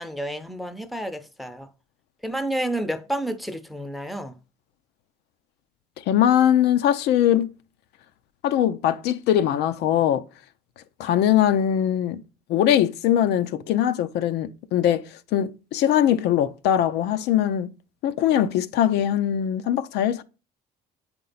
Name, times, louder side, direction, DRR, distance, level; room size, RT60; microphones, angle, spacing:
voice 1, 0.0-1.7 2.2-4.3, right 1 dB, ahead, 0.6 m, -30 dB
voice 2, 6.1-7.5 8.4-10.2 11.0-12.2 12.5-17.7 18.0-20.2, left 10 dB, 80° left, 0.5 m, -21 dB
7.4 x 4.4 x 3.9 m
cardioid pair, 110°, 17 cm